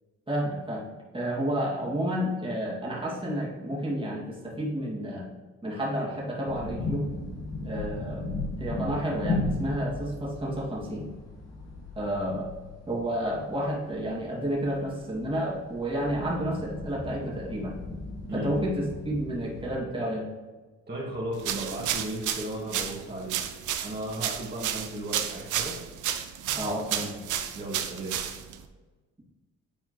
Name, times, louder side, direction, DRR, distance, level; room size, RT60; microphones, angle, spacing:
voice 1, 0.3-5.3 5.6-7.1 7.6-11.1 12.0-12.5 12.9-17.8 18.3-20.3 26.5-27.2, equal, 15° right, -4 dB, 2.2 m, -31 dB
sound 1, 6.5-19.7, left 2 dB, 55° left, 1.8 m, -36 dB
voice 2, 20.9-25.8 27.5-28.2, right 1 dB, 30° right, -6 dB, 2.0 m, -35 dB
sound 2, 21.4-28.6, right 10 dB, 70° right, 0.7 m, -32 dB
8.8 x 4.3 x 3.1 m, 1.3 s
supercardioid pair, 60°, 32 cm